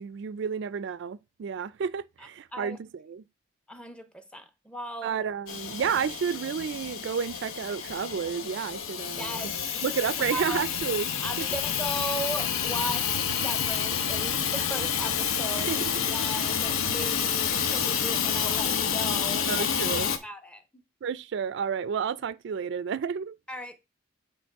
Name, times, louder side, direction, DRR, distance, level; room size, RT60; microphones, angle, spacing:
voice 1, 0.0-3.2 5.0-9.3 9.8-11.1 11.4-11.5 15.7-16.0 19.5-20.1 21.0-23.4, right 7 dB, 60° right, 0.3 m, -31 dB
voice 2, 2.2-2.8 3.7-5.2 9.2-9.9 10.3-10.6 11.2-19.7 19.9-20.6 23.5-23.8, right 1 dB, 5° left, 0.6 m, -38 dB
Hiss / Toilet flush / Trickle dribble, 5.5-20.2, left 7 dB, 85° left, 0.7 m, -29 dB
8.8 x 3.1 x 4.6 m
head